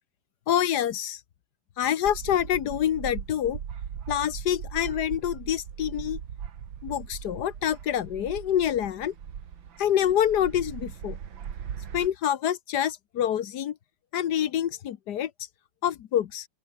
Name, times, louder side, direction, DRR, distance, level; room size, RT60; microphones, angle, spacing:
voice 1, 0.5-1.2 1.8-3.6 4.1-6.2 6.8-9.1 9.8-11.2 11.9-13.7 14.1-15.3 15.8-16.5, left 10 dB, 60° left, 1.4 m, -26 dB
sound 1, 2.0-12.1, right 8 dB, 85° right, 2.4 m, -39 dB
open air
omnidirectional pair, 2.1 m